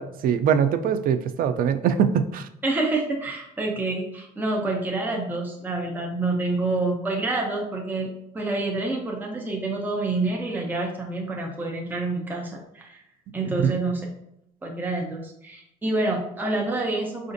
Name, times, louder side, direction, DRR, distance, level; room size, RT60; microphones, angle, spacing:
voice 1, 0.0-2.5 13.5-13.8, right 8 dB, 55° right, 10 dB, 0.4 m, -22 dB
voice 2, 2.6-13.0 13.3-14.1 14.6-17.3, right 2 dB, 10° right, 0 dB, 0.6 m, -27 dB
4.9 x 2.5 x 2.6 m, 0.78 s
cardioid pair, 110°, 17 cm